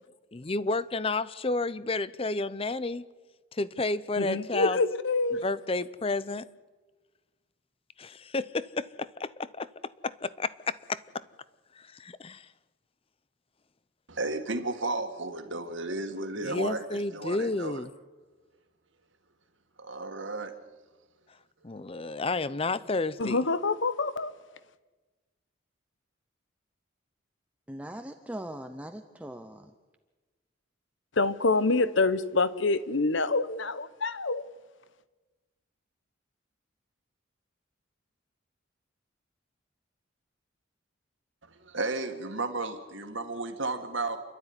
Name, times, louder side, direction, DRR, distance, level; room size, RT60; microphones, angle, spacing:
voice 1, 0.3-3.0 3.5-4.8 5.4-6.5 8.0-9.7 10.0-11.0 11.8-12.5 16.4-17.9 21.6-23.4, left 3 dB, 30° left, 0.6 m, -31 dB
voice 2, 4.2-5.4 23.2-24.3 31.2-34.5, left 3 dB, 70° left, 1.0 m, -26 dB
voice 3, 14.1-17.8 19.8-20.5 41.5-44.2, right 2 dB, 70° right, 2.1 m, -33 dB
voice 4, 27.7-29.7, right 1 dB, 5° right, 0.8 m, -40 dB
28.0 x 12.5 x 9.8 m
head